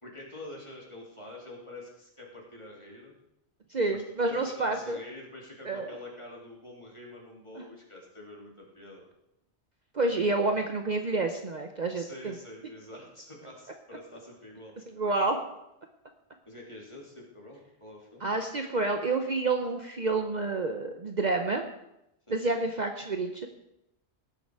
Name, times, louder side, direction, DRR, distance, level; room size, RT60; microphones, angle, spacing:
voice 1, 0.0-3.2 3.9-4.0 4.3-9.0 11.9-14.8 16.4-18.3 22.3-22.4, left 1 dB, 25° left, -2 dB, 3.1 m, -46 dB
voice 2, 3.7-5.0 5.7-5.9 9.9-12.3 15.0-15.4 18.2-21.7 22.3-23.5, right 3 dB, 45° right, 5 dB, 0.9 m, -29 dB
18.0 x 7.0 x 4.8 m, 0.85 s
omnidirectional pair, 1.1 m